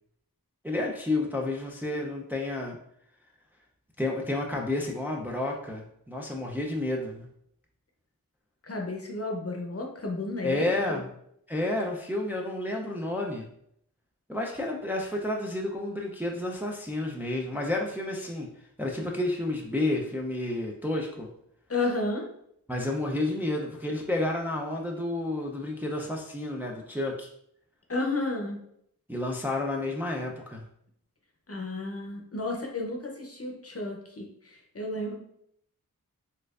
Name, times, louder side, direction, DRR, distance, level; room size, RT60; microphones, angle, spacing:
voice 1, 0.6-2.8 4.0-7.3 10.4-11.1 11.5-13.5 14.3-18.5 18.8-21.3 22.7-27.3 29.1-30.6, left 2 dB, 5° right, 0 dB, 0.5 m, -30 dB
voice 2, 8.6-11.0 21.7-22.3 27.9-28.6 31.5-35.1, left 2 dB, 40° left, 1 dB, 0.8 m, -32 dB
4.3 x 2.5 x 2.4 m, 0.71 s
cardioid pair, 40°, 36 cm